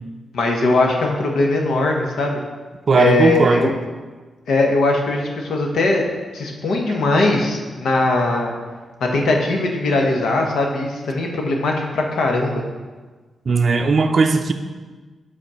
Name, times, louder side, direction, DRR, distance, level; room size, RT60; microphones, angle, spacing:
voice 1, 0.3-2.4 2.9-3.7 4.5-6.1 6.3-8.5 9.0-12.6, left 2 dB, 85° left, 1 dB, 1.2 m, -20 dB
voice 2, 2.9-3.7 13.5-14.5, right 4 dB, 45° right, 5 dB, 0.5 m, -17 dB
7.7 x 4.2 x 5.6 m, 1.3 s
wide cardioid pair, 125°, 0 cm